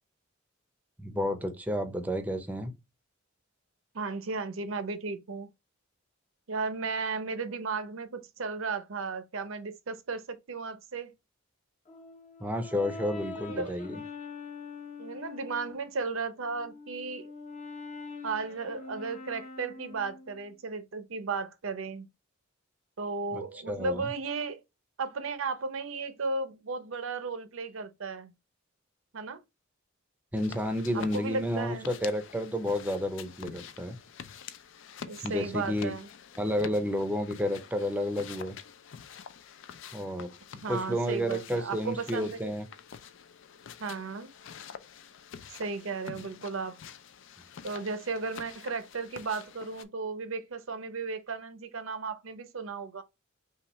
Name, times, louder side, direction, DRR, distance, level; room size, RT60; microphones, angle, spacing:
voice 1, 1.0-2.7 12.4-14.0 23.3-24.1 30.3-34.0 35.2-35.9 36.4-38.5 39.9-40.3 40.7-42.7 46.1-46.3, equal, 10° right, 0.6 m, -31 dB
voice 2, 3.9-5.5 6.5-11.1 13.5-14.1 15.0-17.3 18.2-22.1 23.0-24.6 25.0-28.3 29.1-29.4 31.1-31.9 35.1-36.1 40.6-42.5 43.8-44.3 45.6-46.8 47.6-53.0, right 4 dB, 75° right, 0.7 m, -35 dB
Brass instrument, 11.9-15.8 16.4-20.5, left 4 dB, 35° left, 0.8 m, -44 dB
sound 1, 30.4-49.8, left 7 dB, 65° left, 0.4 m, -47 dB
5.7 x 2.4 x 3.0 m
head